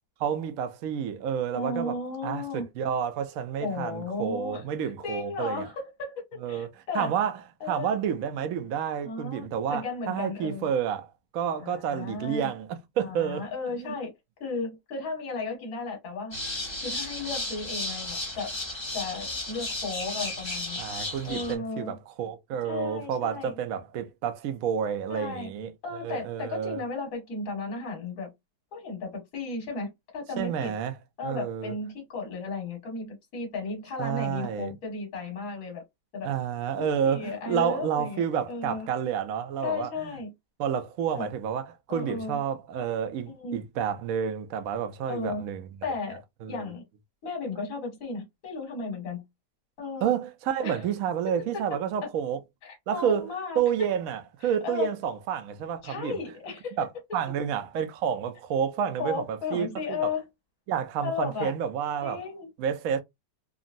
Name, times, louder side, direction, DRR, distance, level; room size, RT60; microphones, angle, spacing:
voice 1, 0.2-2.0 2.2-5.7 6.4-6.7 6.9-7.4 7.7-13.5 13.8-14.0 20.8-25.7 26.0-26.8 30.4-30.9 31.2-31.7 34.0-34.7 36.2-40.1 40.6-45.7 46.4-46.7 50.0-52.4 52.9-53.3 53.6-56.2 56.8-60.1 60.7-62.2 62.6-63.0, right 8 dB, 65° right, 0.9 m, -30 dB
voice 2, 1.5-2.7 3.6-4.6 5.0-7.1 7.6-7.9 9.0-10.7 11.6-12.5 13.0-14.1 14.4-16.4 16.8-18.5 18.9-20.8 21.2-21.9 22.6-23.5 25.1-25.5 25.8-28.3 28.7-30.7 31.2-35.8 36.1-36.3 36.8-38.2 38.5-38.9 39.6-40.3 41.1-41.3 41.9-42.4 43.2-43.6 45.1-45.4 45.8-46.2 46.5-46.8 47.2-49.2 49.8-50.1 50.6-50.8 51.5-51.6 52.6-53.6 54.4-54.9 55.8-56.8 59.0-60.3 61.0-61.5 62.0-62.5, left 4 dB, 55° left, 1.6 m, -34 dB
sound 1, 16.3-21.6, left 2 dB, 20° left, 0.7 m, -34 dB
3.7 x 2.0 x 2.5 m
omnidirectional pair, 1.8 m